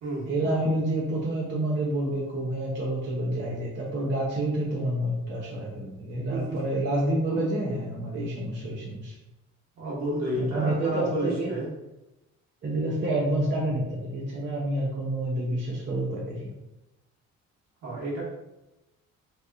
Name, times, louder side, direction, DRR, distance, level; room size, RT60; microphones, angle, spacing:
voice 1, 0.2-9.2 10.3-11.5 12.6-16.4, right 1 dB, 40° right, -3 dB, 0.6 m, -28 dB
voice 2, 9.8-11.7 17.8-18.2, right 1 dB, 70° right, -5 dB, 1.2 m, -30 dB
2.8 x 2.4 x 2.3 m, 0.97 s
cardioid pair, 90°, 30 cm